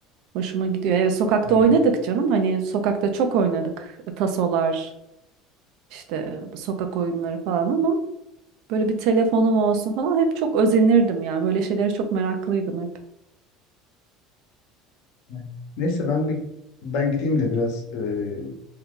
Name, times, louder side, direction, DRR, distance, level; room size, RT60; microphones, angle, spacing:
voice 1, 0.3-3.9 4.2-4.9 5.9-8.0 8.7-12.9, right 5 dB, 65° right, 6 dB, 0.5 m, -22 dB
voice 2, 1.4-1.8 15.3-15.5 15.8-16.4 16.8-18.7, left 3 dB, 70° left, 1 dB, 0.9 m, -26 dB
2.8 x 2.3 x 3.7 m, 0.83 s
cardioid pair, 150°, 0 cm